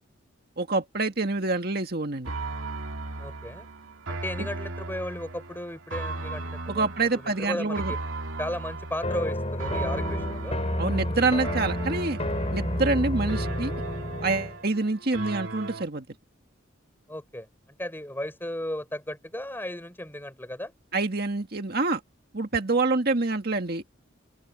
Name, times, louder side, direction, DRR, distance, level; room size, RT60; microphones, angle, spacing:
voice 1, 0.6-2.3 6.7-7.9 10.8-12.2 12.5-13.7 14.2-16.1 20.9-22.0 22.3-23.8, right 3 dB, 50° right, 1.8 m, -26 dB
sound 1, 2.2-15.8, right 2 dB, 90° right, 2.4 m, -36 dB
voice 2, 3.2-3.7 4.1-6.9 7.1-8.0 8.4-10.6 17.1-17.5 17.8-20.7, left 1 dB, 10° left, 5.9 m, -35 dB
sound 2, 9.0-14.6, left 1 dB, 35° left, 3.9 m, -30 dB
open air
head